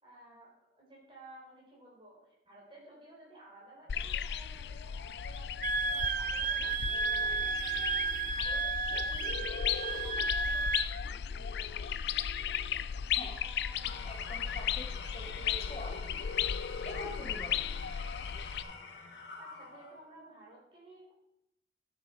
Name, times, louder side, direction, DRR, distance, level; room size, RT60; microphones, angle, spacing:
voice 1, 0.0-12.0 13.3-14.0 19.4-21.1, right 1 dB, 30° right, -4 dB, 4.3 m, -55 dB
sound 1, 3.9-18.6, left 8 dB, 75° left, 0.4 m, -35 dB
Wind instrument woodwind instrument, 5.6-10.9, right 4 dB, 45° right, 0.5 m, -33 dB
voice 2, 13.0-13.4 14.0-16.0 16.8-17.5, left 1 dB, 35° left, 3 dB, 1.1 m, -45 dB
Engine / Tools, 13.7-20.2, left 3 dB, 90° left, 1.7 m, -47 dB
11.5 x 7.7 x 4.6 m, 0.84 s
head